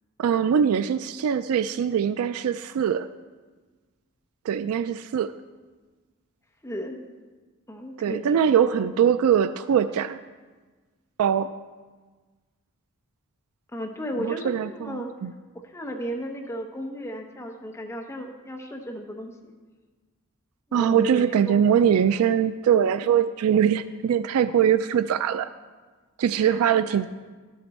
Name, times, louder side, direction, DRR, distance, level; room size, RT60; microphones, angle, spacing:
voice 1, 0.2-3.1 4.5-5.3 8.0-10.2 11.2-11.5 14.2-15.3 20.7-25.5 26.2-27.1, right 8 dB, 75° right, 13 dB, 0.3 m, -22 dB
voice 2, 6.6-7.0 7.7-8.2 8.7-8.9 13.7-15.1 15.6-19.5 20.7-21.6 21.9-22.2 26.3-26.6 26.9-27.0, equal, 10° left, 1 dB, 0.7 m, -35 dB
12.5 x 7.5 x 4.2 m, 1.4 s
head